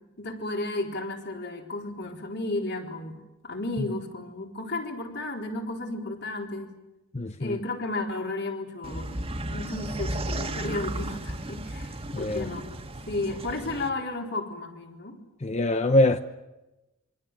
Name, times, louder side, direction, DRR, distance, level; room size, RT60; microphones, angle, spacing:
voice 1, 0.2-6.7 7.4-9.2 9.5-12.7 13.1-15.2, left 2 dB, 55° left, 4.2 m, -33 dB
voice 2, 7.1-7.6 12.1-12.5 15.4-16.2, left 1 dB, 30° left, 0.9 m, -23 dB
sound 1, 8.8-13.9, right 1 dB, 30° right, 1.8 m, -34 dB
26.5 x 25.0 x 7.5 m
head